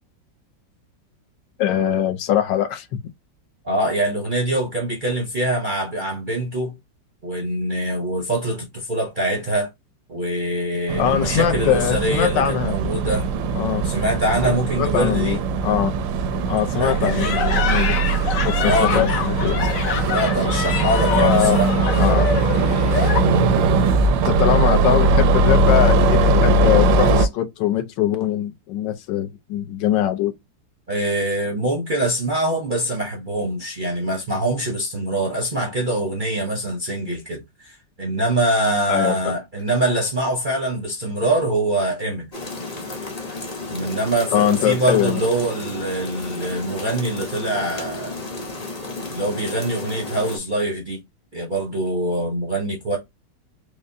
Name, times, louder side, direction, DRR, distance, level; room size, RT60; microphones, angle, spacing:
voice 1, 1.6-2.9 11.0-12.8 13.6-13.8 14.4-15.9 16.5-18.0 18.4-19.8 21.1-21.6 22.0-22.3 24.1-30.3 38.9-39.3 44.3-45.2, left 11 dB, 75° left, 1.2 m, -22 dB
voice 2, 3.6-6.7 7.2-9.7 10.1-13.3 13.8-15.4 16.7-17.5 18.6-19.2 20.0-22.9 23.2-23.5 30.9-42.3 43.7-48.2 49.1-51.0 51.3-53.0, right 1 dB, 45° right, 0.7 m, -24 dB
sound 1, 10.9-27.3, right 3 dB, 80° right, 1.3 m, -20 dB
sound 2, 16.9-23.2, left 6 dB, 60° left, 1.0 m, -26 dB
sound 3, 42.3-50.4, left 2 dB, 30° left, 0.7 m, -33 dB
4.9 x 2.1 x 2.6 m
omnidirectional pair, 2.0 m